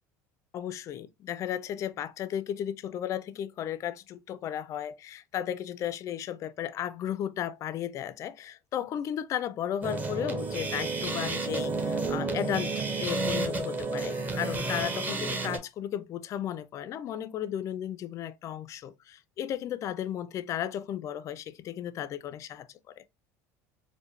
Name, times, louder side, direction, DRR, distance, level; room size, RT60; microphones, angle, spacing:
voice 1, 0.5-23.0, left 10 dB, 40° left, 0.4 m, -35 dB
sound 1, 9.8-15.6, right 3 dB, 20° right, 0.9 m, -31 dB
4.7 x 2.1 x 3.1 m
cardioid pair, 135°, 8 cm